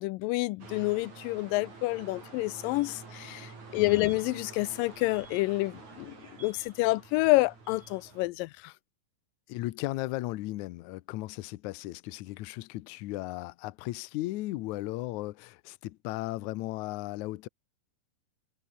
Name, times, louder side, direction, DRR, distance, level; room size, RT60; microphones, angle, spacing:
voice 1, 0.0-6.1 6.4-8.7, left 21 dB, 90° left, 2.3 m, -28 dB
sound 1, 0.6-8.3, right 4 dB, 55° right, 7.6 m, -48 dB
voice 2, 3.7-4.2 9.5-17.5, left 18 dB, 75° left, 2.0 m, -36 dB
omnidirectional pair, 3.9 m